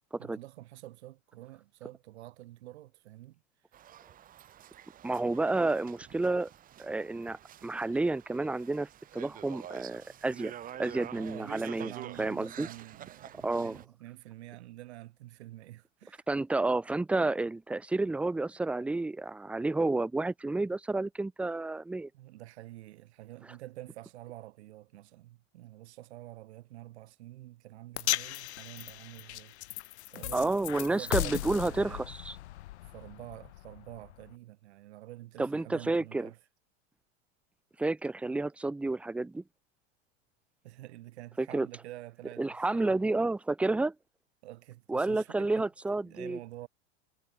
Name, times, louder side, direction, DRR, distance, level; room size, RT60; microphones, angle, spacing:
voice 1, 0.2-3.4 11.1-16.2 22.1-29.6 30.1-32.1 32.5-36.4 40.6-43.0 44.4-46.7, right 16 dB, 75° right, 5.6 m, -48 dB
sound 1, 3.7-13.9, right 11 dB, 25° right, 3.0 m, -48 dB
voice 2, 5.0-6.5 6.8-10.5 10.8-11.9 12.2-12.7 13.4-13.8 16.3-22.1 30.3-32.4 35.4-36.3 37.8-39.4 41.4-41.7 42.4-43.9 44.9-46.4, right 2 dB, 5° right, 0.8 m, -30 dB
sound 2, 28.0-34.3, left 15 dB, 80° left, 5.0 m, -37 dB
supercardioid pair, 160°, 33 cm